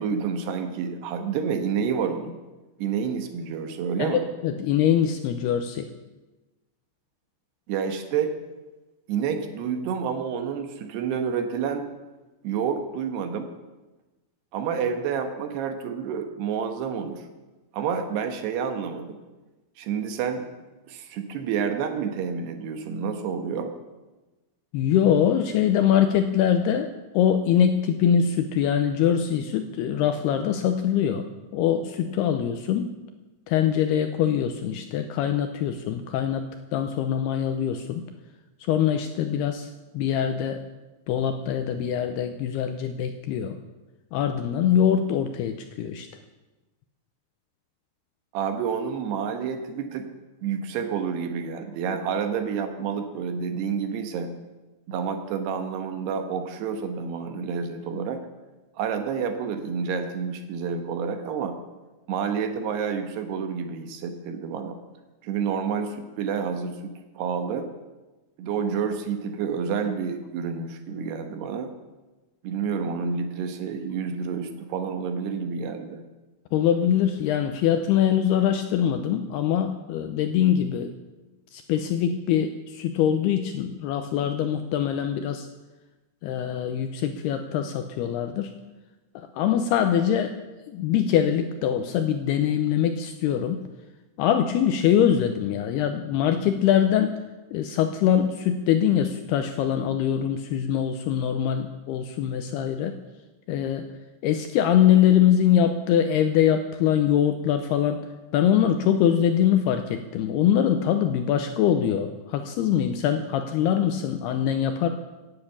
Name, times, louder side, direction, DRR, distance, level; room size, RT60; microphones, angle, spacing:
voice 1, 0.0-2.4 2.8-4.2 7.7-8.3 9.1-11.9 12.4-13.5 14.5-17.3 17.7-19.2 19.8-20.5 20.9-23.7 48.3-50.1 50.4-54.3 54.9-58.2 58.7-61.6 62.1-64.8 65.2-67.7 68.4-71.7 72.4-76.0, right 6 dB, 70° right, 7 dB, 3.0 m, -29 dB
voice 2, 4.0-5.9 24.7-31.3 31.5-32.9 33.5-38.0 38.7-39.7 39.9-40.6 41.1-43.6 44.1-46.1 76.5-80.9 81.5-85.5 86.2-88.5 89.2-90.4 90.7-93.6 94.2-97.2 97.5-103.0 103.5-103.9 104.2-108.1 108.3-114.9, left 9 dB, 85° left, 7 dB, 2.4 m, -23 dB
17.0 x 10.0 x 7.4 m, 1.1 s
omnidirectional pair, 5.3 m